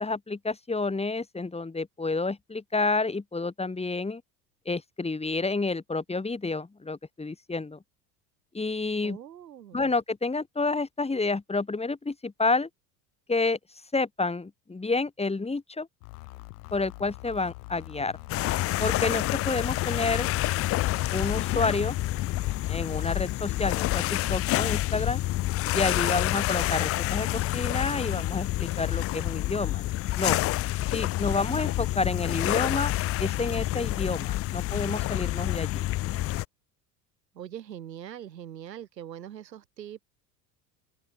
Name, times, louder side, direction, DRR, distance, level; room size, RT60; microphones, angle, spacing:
voice 1, 0.0-4.2 4.7-7.8 8.5-9.2 9.7-12.7 13.3-13.6 13.9-15.9 16.7-18.1 18.8-20.3 21.1-22.0 22.7-25.2 25.7-29.8 30.2-30.4 30.9-32.9 33.2-35.8, left 3 dB, 10° left, 2.7 m, -29 dB
voice 2, 9.0-9.9 37.3-40.0, right 10 dB, 85° right, 2.0 m, -42 dB
sound 1, 16.0-21.5, left 25 dB, 65° left, 3.9 m, -44 dB
sound 2, 18.3-36.5, left 16 dB, 30° left, 0.5 m, -28 dB
open air
hypercardioid pair, 75°, 49 cm